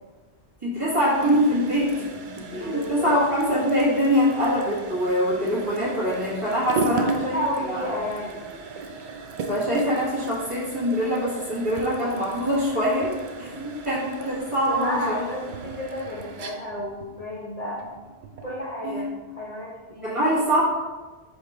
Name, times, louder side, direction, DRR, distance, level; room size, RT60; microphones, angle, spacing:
voice 1, 0.6-2.2 2.5-7.4 7.7-7.9 9.5-13.5 13.9-15.2 18.8-19.0 20.0-20.6, equal, 30° right, -8 dB, 1.6 m, -24 dB
sound 1, 0.9-18.6, right 3 dB, 60° right, 0.6 m, -36 dB
voice 2, 2.5-3.1 6.8-8.7 13.3-13.9 14.6-17.8 18.4-20.1, left 1 dB, 40° left, -5 dB, 0.8 m, -32 dB
4.8 x 3.2 x 3.5 m, 1.3 s
omnidirectional pair, 1.1 m